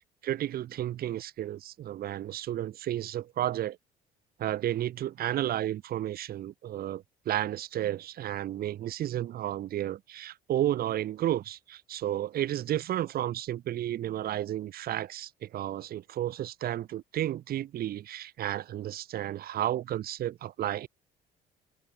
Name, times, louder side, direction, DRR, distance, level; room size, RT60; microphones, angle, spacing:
voice 1, 0.0-3.8 4.4-20.9, right 12 dB, 65° right, 3.1 m, -32 dB
cardioid pair, 110°, 17 cm